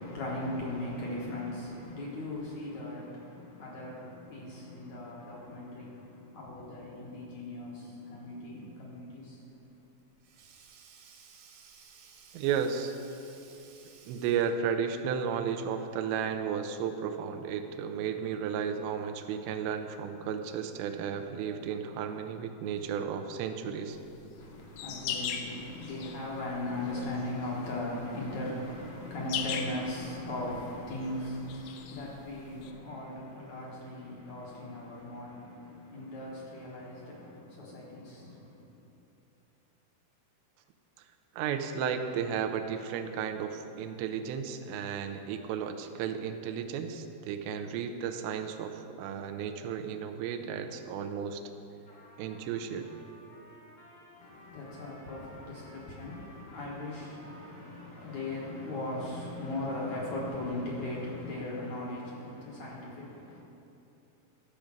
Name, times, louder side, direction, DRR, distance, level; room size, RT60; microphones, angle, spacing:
voice 1, 0.0-9.4 24.3-38.6 54.2-63.4, left 1 dB, 65° left, -4 dB, 1.9 m, -38 dB
Sink (filling or washing), 9.6-14.7, right 6 dB, 70° right, 3.1 m, -56 dB
voice 2, 12.3-12.9 14.1-24.0 41.4-51.4 52.2-52.9, right 7 dB, 90° right, 6 dB, 2.9 m, -33 dB
sound 1, 23.9-32.7, left 8 dB, 80° left, 2.8 m, -40 dB
Trumpet, 51.8-59.7, equal, 50° left, 1.2 m, -56 dB
13.5 x 5.1 x 7.3 m, 2.9 s
omnidirectional pair, 5.0 m